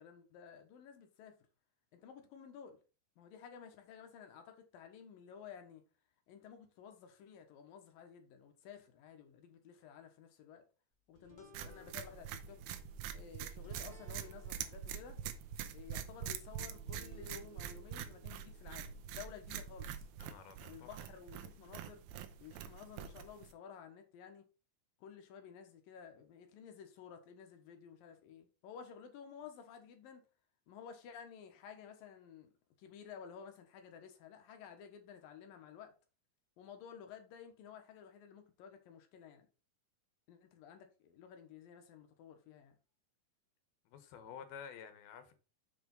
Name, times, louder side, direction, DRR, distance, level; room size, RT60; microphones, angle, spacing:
voice 1, 0.0-1.4 1.9-2.8 3.2-5.8 6.3-10.6 11.1-12.6 13.1-15.2 15.7-20.1 20.6-22.0 22.4-24.4 25.0-30.2 30.7-32.5 32.8-35.9 36.6-39.5 40.3-42.8, left 7 dB, 75° left, 2.9 m, -53 dB
sound 1, 11.2-21.8, equal, 40° right, 0.6 m, -63 dB
sound 2, 11.5-23.5, right 9 dB, 85° right, 2.6 m, -45 dB
voice 2, 20.2-20.9 43.9-45.3, left 7 dB, 90° left, 3.0 m, -51 dB
6.9 x 4.9 x 5.4 m
omnidirectional pair, 4.2 m